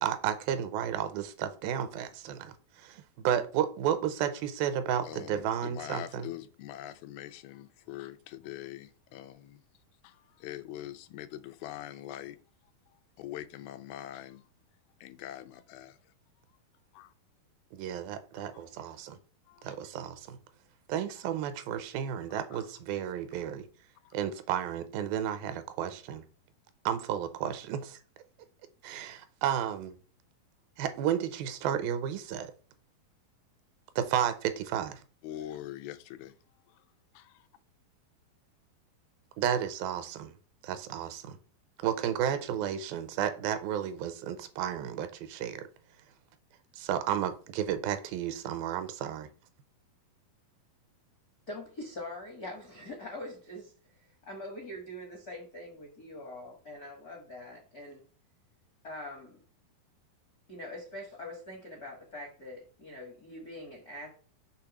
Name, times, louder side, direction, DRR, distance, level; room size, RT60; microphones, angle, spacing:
voice 1, 0.0-6.3 17.7-19.2 19.6-20.4 20.9-23.7 24.1-26.2 26.9-28.0 28.8-30.0 30.8-32.5 34.0-35.0 39.4-40.4 40.6-41.4 41.8-45.7 46.7-49.3, right 9 dB, 85° right, 2.4 m, -32 dB
voice 2, 5.0-9.6 10.0-12.4 12.9-14.5 15.0-16.1 16.9-17.1 18.3-18.8 19.5-19.8 22.3-22.7 24.0-24.2 35.2-36.4 36.7-36.8 37.1-37.5, left 13 dB, 85° left, 2.4 m, -44 dB
voice 3, 51.5-53.7 54.2-58.0 58.8-59.4 60.5-64.1, left 1 dB, 70° left, 0.9 m, -43 dB
6.2 x 3.4 x 5.9 m
omnidirectional pair, 4.3 m